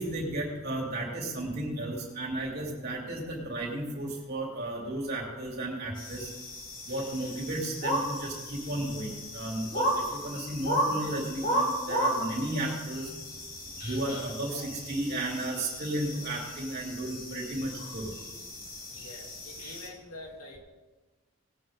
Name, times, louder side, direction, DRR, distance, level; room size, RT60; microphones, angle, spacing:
voice 1, 0.0-6.3 6.9-13.1 13.8-18.1, right 1 dB, 45° right, -2 dB, 3.4 m, -34 dB
sound 1, 6.0-19.9, equal, 40° left, 3.5 m, -34 dB
voice 2, 14.2-15.0 18.9-20.6, left 2 dB, 85° left, -1 dB, 3.0 m, -47 dB
19.5 x 8.7 x 3.8 m, 1.2 s
head